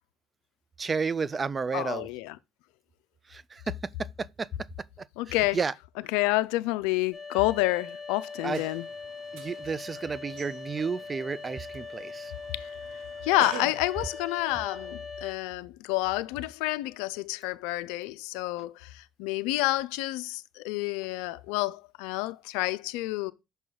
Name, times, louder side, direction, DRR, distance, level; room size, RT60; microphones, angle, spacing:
voice 1, 0.8-2.1 3.3-4.5 5.3-5.7 8.4-8.7 9.3-12.3, right 5 dB, 30° right, 0.4 m, -32 dB
voice 2, 1.7-2.4 5.2-5.6 6.1-8.8 12.5-12.7 13.2-23.3, left 18 dB, 80° left, 0.4 m, -29 dB
sound 1, 7.1-15.3, left 4 dB, 15° left, 1.2 m, -41 dB
sound 2, 8.5-13.9, right 8 dB, 80° right, 0.9 m, -46 dB
6.1 x 5.4 x 3.8 m
supercardioid pair, 75°, 0 cm